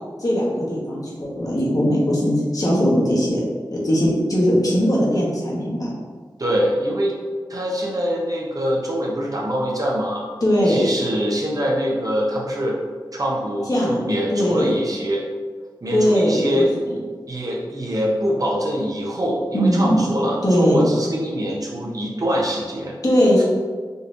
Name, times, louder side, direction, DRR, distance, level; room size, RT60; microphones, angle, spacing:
voice 1, 0.2-3.4 3.7-5.9 10.4-10.9 13.7-14.0 14.3-14.7 15.9-16.7 19.5-20.0 20.4-20.9 23.0-23.4, equal, 50° left, -5 dB, 1.2 m, -19 dB
voice 2, 6.4-7.2 7.5-10.2 10.7-12.8 13.1-15.2 15.8-16.7 17.3-22.9, equal, 50° right, -3 dB, 0.8 m, -24 dB
3.8 x 2.8 x 2.5 m, 1.5 s
cardioid pair, 45°, 8 cm